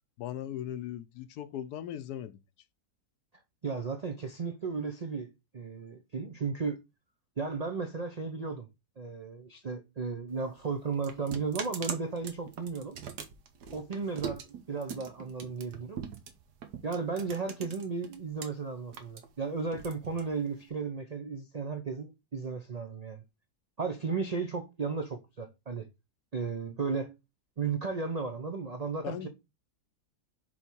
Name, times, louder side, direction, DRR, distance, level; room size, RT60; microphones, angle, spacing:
voice 1, 0.2-2.4 27.6-27.7 29.0-29.3, left 11 dB, 75° left, 1.1 m, -38 dB
voice 2, 3.6-6.8 7.4-8.7 9.0-13.0 13.7-16.0 16.8-23.2 23.8-25.9 26.3-27.2 27.6-29.3, right 4 dB, 60° right, 0.4 m, -34 dB
sound 1, 10.3-18.5 18.8-20.7, right 7 dB, 90° right, 1.6 m, -42 dB
6.2 x 3.6 x 4.5 m
omnidirectional pair, 1.7 m